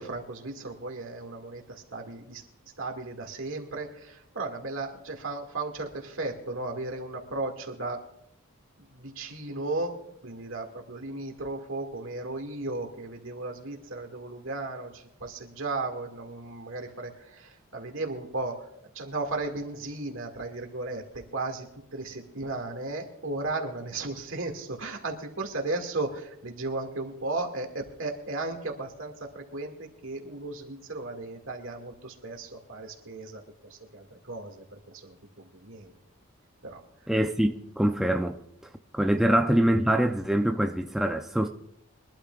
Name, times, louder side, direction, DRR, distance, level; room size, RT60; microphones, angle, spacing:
voice 1, 0.0-2.4 2.8-8.0 8.8-10.0 10.2-35.9 36.6-36.8, right 2 dB, 60° right, 2.2 m, -35 dB
voice 2, 37.1-38.4 38.9-41.5, right 1 dB, ahead, 0.4 m, -24 dB
23.5 x 12.5 x 2.4 m
head